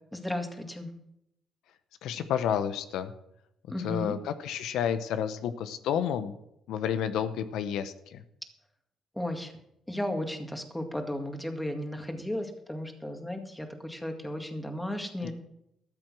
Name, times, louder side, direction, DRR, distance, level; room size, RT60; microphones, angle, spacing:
voice 1, 0.1-0.9 3.7-4.2 9.1-9.5 9.9-15.3, left 1 dB, 5° left, 5 dB, 2.0 m, -34 dB
voice 2, 2.0-3.1 3.8-6.4 6.7-8.2 15.2-15.3, left 8 dB, 85° left, 11 dB, 0.8 m, -30 dB
13.5 x 7.6 x 6.2 m, 0.80 s
cardioid pair, 90°, 0 cm